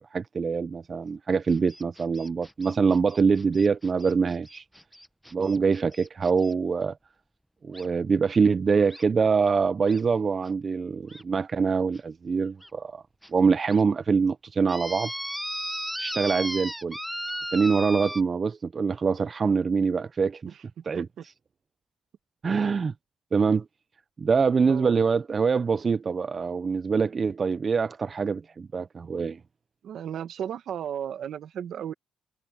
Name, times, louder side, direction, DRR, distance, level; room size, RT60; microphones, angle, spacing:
voice 1, 0.1-4.6 5.3-7.0 7.6-13.0 13.3-15.1 16.0-17.0 17.5-20.5 20.9-21.1 22.4-22.9 23.3-23.7 24.2-29.4, right 5 dB, 35° right, 0.3 m, -24 dB
sound 1, 1.5-6.5 7.7-7.9 8.9-9.0 9.9-10.0 10.5-10.6 11.1-11.2 11.9-12.0 12.6-12.7 13.2-13.3 13.7-13.8 14.7-18.2, equal, ahead, 0.6 m, -36 dB
voice 2, 29.8-31.9, right 9 dB, 70° right, 1.4 m, -34 dB
cardioid pair, 125°, 0 cm